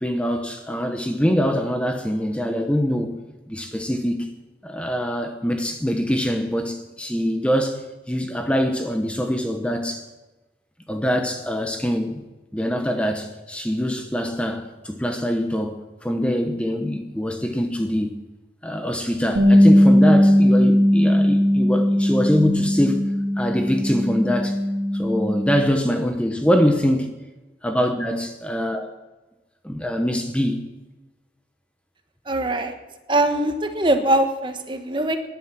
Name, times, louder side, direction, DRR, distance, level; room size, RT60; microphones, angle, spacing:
voice 1, 0.0-3.1 3.5-4.3 4.6-10.0 10.9-12.2 12.5-18.2 18.6-23.1 23.4-24.6 24.9-27.1 27.6-28.9 29.6-30.6, equal, 5° left, 1.0 m, -24 dB
Bass guitar, 19.4-25.6, equal, 60° right, 2.3 m, -18 dB
voice 2, 32.2-32.7 33.1-35.2, right 1 dB, 25° right, 1.3 m, -22 dB
19.5 x 11.0 x 6.1 m
head